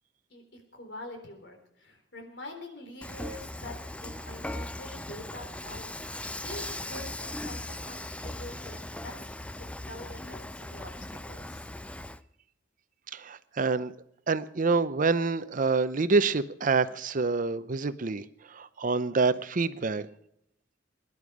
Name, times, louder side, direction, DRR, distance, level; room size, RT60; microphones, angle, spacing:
voice 1, 0.3-9.3 9.6-11.6, left 1 dB, 70° left, 3 dB, 3.9 m, -45 dB
Dishes pots and pans / Frying (food), 3.0-12.2, left 1 dB, 5° left, 0.5 m, -39 dB
voice 2, 13.1-13.9 14.3-18.2 18.5-20.1, right 4 dB, 45° right, 13 dB, 0.7 m, -27 dB
22.5 x 11.0 x 4.9 m, 0.75 s
head